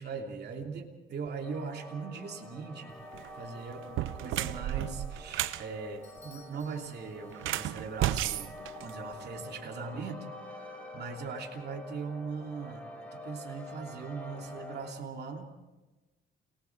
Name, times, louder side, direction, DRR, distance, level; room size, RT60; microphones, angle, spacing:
voice 1, 0.0-2.9 3.4-8.5 8.8-10.2 10.5-15.5, right 5 dB, 55° right, 2 dB, 3.0 m, -40 dB
sound 1, 1.4-14.9, left 1 dB, 5° left, 6.0 m, -47 dB
sound 2, 3.0-3.3 3.8-5.6 7.3-9.4, right 13 dB, 85° right, 0.9 m, -33 dB
Bell / Doorbell, 6.0-7.9, left 3 dB, 35° left, 5.1 m, -59 dB
29.5 x 19.5 x 4.7 m, 1.1 s
cardioid pair, 90°, 20 cm